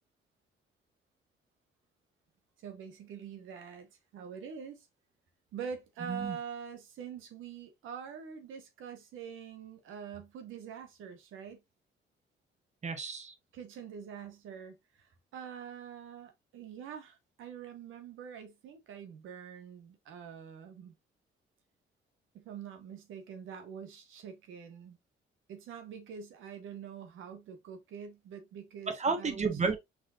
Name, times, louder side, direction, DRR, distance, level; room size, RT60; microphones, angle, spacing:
voice 1, 2.6-4.9 5.5-11.6 13.5-20.9 22.3-25.0 25.5-29.5, right 7 dB, 85° right, 1.4 m, -45 dB
voice 2, 12.8-13.3 28.9-29.8, right 4 dB, 35° right, 1.4 m, -31 dB
5.7 x 3.7 x 2.5 m
cardioid pair, 90°, 20 cm